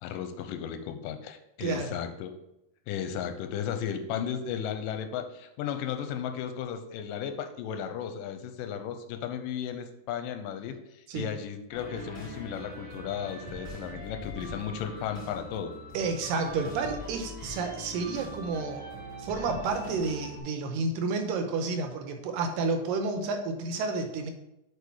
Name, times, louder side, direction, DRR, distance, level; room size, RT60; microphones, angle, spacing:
voice 1, 0.0-2.3 2.9-10.8 11.2-15.7, left 8 dB, 90° left, 7 dB, 2.3 m, -35 dB
voice 2, 1.6-1.9 11.1-11.3 15.9-18.9 19.2-24.3, right 4 dB, 85° right, 6 dB, 2.5 m, -30 dB
sound 1, 11.7-20.4, equal, 10° left, 2.4 m, -42 dB
6.9 x 4.8 x 4.7 m, 0.86 s
omnidirectional pair, 3.8 m